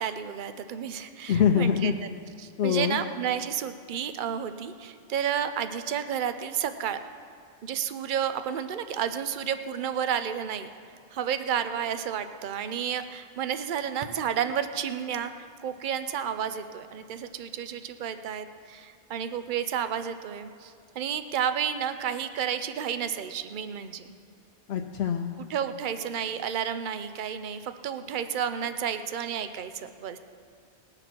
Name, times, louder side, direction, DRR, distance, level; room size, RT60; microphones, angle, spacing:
voice 1, 0.0-2.1 2.4-7.0 7.6-10.7 11.1-24.1 25.4-30.2, right 8 dB, 50° right, 10 dB, 0.8 m, -31 dB
voice 2, 1.3-1.9 2.6-3.0 24.7-25.4, left 8 dB, 70° left, 3 dB, 0.9 m, -24 dB
20.0 x 6.9 x 6.0 m, 2.3 s
omnidirectional pair, 1.2 m